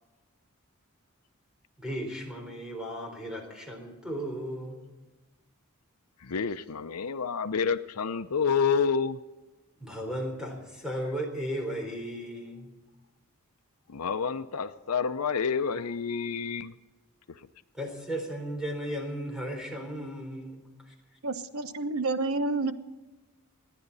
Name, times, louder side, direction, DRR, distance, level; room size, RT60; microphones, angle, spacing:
voice 1, 1.8-4.8 9.8-12.7 17.7-20.9, equal, 5° right, 2 dB, 3.9 m, -35 dB
voice 2, 6.2-9.2 13.9-16.7, left 6 dB, 85° left, 11 dB, 0.7 m, -28 dB
voice 3, 21.2-22.7, right 3 dB, 70° right, 10 dB, 1.1 m, -29 dB
28.5 x 10.0 x 4.1 m, 1.1 s
head